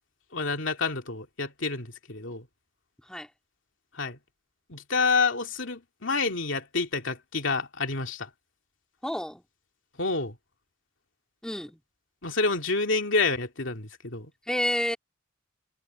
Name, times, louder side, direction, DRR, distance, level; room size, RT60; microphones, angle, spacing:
voice 1, 0.3-2.5 3.9-4.2 4.7-8.3 10.0-10.4 12.2-14.3, left 4 dB, 70° left, 2.7 m, -28 dB
voice 2, 9.0-9.4 11.4-11.8 14.5-15.0, left 1 dB, 5° left, 2.7 m, -29 dB
head